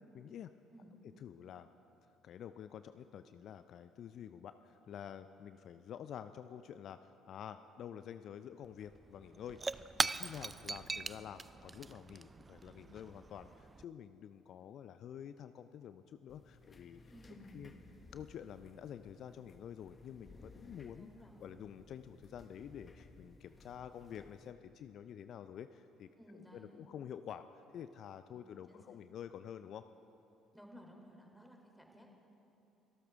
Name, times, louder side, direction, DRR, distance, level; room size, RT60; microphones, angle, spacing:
voice 1, 0.1-0.5 1.2-1.7 2.2-17.0 17.5-17.7 18.1-21.1 21.4-29.8, left 9 dB, 55° left, 11 dB, 0.4 m, -49 dB
Shatter / Crushing, 8.6-8.7 8.9-13.8, right 3 dB, 25° right, 0.4 m, -40 dB
sound 1, 16.3-24.5, left 2 dB, 30° left, 1.1 m, -59 dB
voice 2, 17.1-17.7 20.9-21.5 26.2-26.8 28.3-29.0 30.5-32.2, equal, 5° left, 1 dB, 3.2 m, -57 dB
25.0 x 13.0 x 3.6 m, 2.8 s
hypercardioid pair, 55°, 0 cm